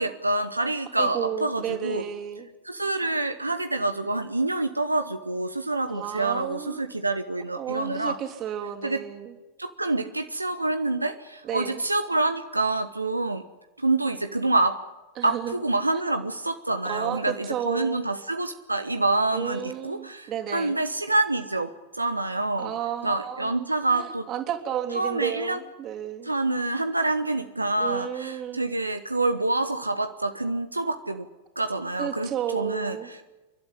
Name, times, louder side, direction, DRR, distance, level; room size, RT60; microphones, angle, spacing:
voice 1, 0.0-2.0 2.7-8.2 8.8-9.0 9.6-13.4 13.8-14.8 15.2-22.7 23.0-24.3 24.9-25.6 26.2-31.3 31.6-33.2, right 2 dB, 85° right, 9 dB, 1.0 m, -27 dB
voice 2, 1.0-2.5 5.9-6.8 7.6-9.3 11.4-11.8 15.2-15.5 16.9-18.0 19.3-20.8 22.6-26.3 27.8-28.6 32.0-33.1, right 9 dB, 35° right, 4 dB, 3.4 m, -32 dB
30.0 x 12.0 x 9.8 m, 1.1 s
figure-of-eight pair, 90°, 0 cm